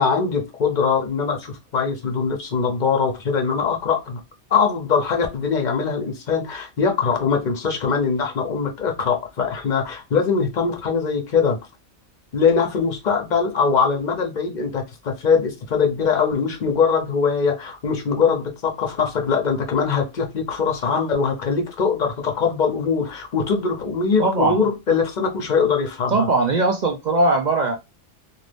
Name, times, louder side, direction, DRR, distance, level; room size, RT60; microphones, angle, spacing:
voice 1, 0.0-4.2 4.5-11.6 12.3-26.3, left 5 dB, 45° left, 0.8 m, -22 dB
voice 2, 24.2-24.6 26.1-27.8, right 3 dB, 55° right, 0.5 m, -19 dB
2.5 x 2.5 x 3.3 m
omnidirectional pair, 1.2 m